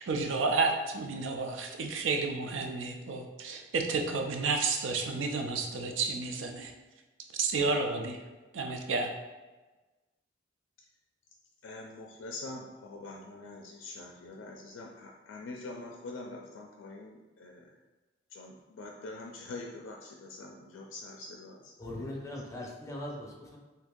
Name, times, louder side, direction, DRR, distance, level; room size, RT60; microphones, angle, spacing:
voice 1, 0.1-6.7 7.4-8.2 8.5-9.1, right 4 dB, 80° right, 4 dB, 0.4 m, -31 dB
voice 2, 11.6-17.7 18.3-21.7, left 2 dB, 85° left, 0 dB, 0.4 m, -44 dB
voice 3, 21.8-23.6, left 1 dB, 15° left, -1 dB, 0.6 m, -40 dB
2.8 x 2.6 x 3.6 m, 1.2 s
head